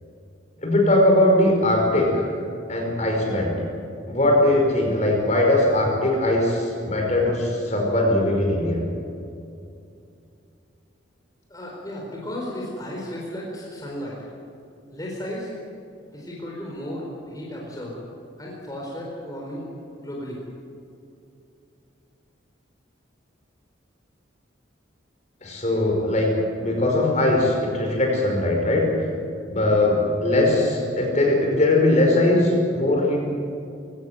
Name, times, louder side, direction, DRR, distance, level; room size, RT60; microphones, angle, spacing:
voice 1, 0.6-2.3 2.7-3.5 4.1-8.8 25.4-26.3 26.6-28.9 29.5-33.2, left 1 dB, 35° left, 0 dB, 5.2 m, -20 dB
voice 2, 11.5-14.2 14.9-15.5 16.1-18.0 18.4-19.7 20.0-20.4, equal, 20° left, -3 dB, 4.5 m, -34 dB
23.0 x 17.5 x 9.4 m, 2.6 s
head